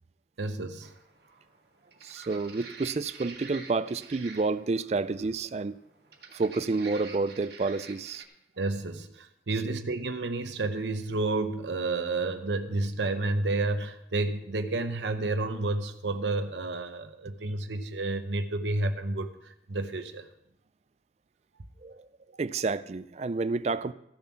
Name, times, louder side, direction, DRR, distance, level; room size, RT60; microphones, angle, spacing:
voice 1, 0.4-0.9 8.6-20.3, right 2 dB, 85° right, 0.8 m, -30 dB
sound 1, 0.8-8.2, right 4 dB, 65° right, 1.8 m, -48 dB
voice 2, 2.0-5.8 6.3-8.2 21.8-22.1 22.4-23.9, right 3 dB, 40° right, 0.4 m, -29 dB
14.5 x 7.0 x 5.8 m
head